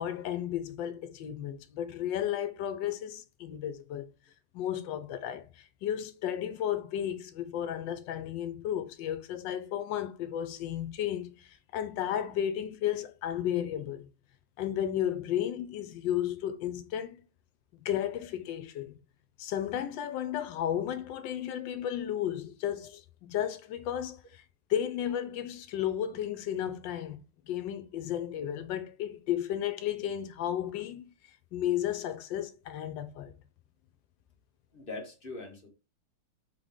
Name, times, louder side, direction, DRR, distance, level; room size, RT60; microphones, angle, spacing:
voice 1, 0.0-4.1 4.5-14.1 14.6-17.2 17.7-18.9 19.4-24.4 24.7-27.2 27.5-33.3, left 10 dB, 80° left, 1.3 m, -33 dB
voice 2, 34.7-35.7, left 2 dB, 35° left, 1.2 m, -41 dB
3.7 x 3.6 x 3.6 m
omnidirectional pair, 2.0 m